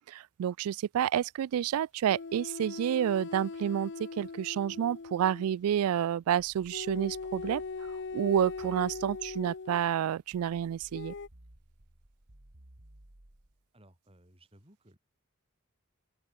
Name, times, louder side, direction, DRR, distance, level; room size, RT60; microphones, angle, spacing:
voice 1, 0.1-7.6 8.1-11.1, right 9 dB, 80° right, 0.3 m, -29 dB
sound 1, 2.1-5.6 6.7-9.8 10.9-11.3, left 4 dB, 55° left, 0.7 m, -40 dB
sound 2, 6.4-9.6 10.3-13.6, right 1 dB, 60° right, 2.3 m, -57 dB
voice 2, 13.7-15.0, right 1 dB, 25° right, 7.9 m, -60 dB
open air
head